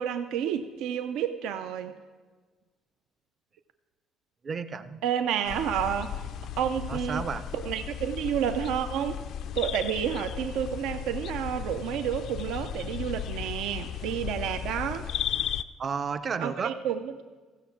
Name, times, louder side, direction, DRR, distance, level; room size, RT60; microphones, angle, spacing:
voice 1, 0.0-1.9 5.0-6.1 6.6-7.2 7.5-9.2 9.6-15.1 16.4-17.2, right 9 dB, 80° right, 8 dB, 0.5 m, -30 dB
voice 2, 4.4-5.0 6.9-7.4 15.8-16.8, right 5 dB, 30° right, 13 dB, 0.5 m, -32 dB
sound 1, 5.4-15.6, left 10 dB, 55° left, 0.3 m, -35 dB
15.0 x 7.0 x 5.8 m, 1.4 s
cardioid pair, 160°, 0 cm